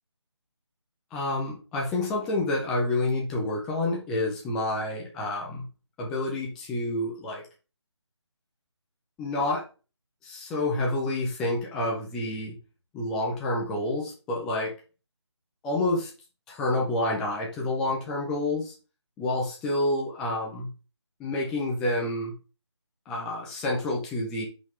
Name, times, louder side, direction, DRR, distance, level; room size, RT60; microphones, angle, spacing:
voice 1, 1.1-5.6 6.0-7.4 9.2-9.6 10.2-12.6 12.9-14.7 15.6-16.1 16.5-18.7 19.2-20.7 21.2-22.3 23.1-24.5, left 2 dB, 5° left, -2 dB, 0.5 m, -28 dB
5.4 x 5.4 x 3.2 m, 0.33 s
figure-of-eight pair, 155°, 15 cm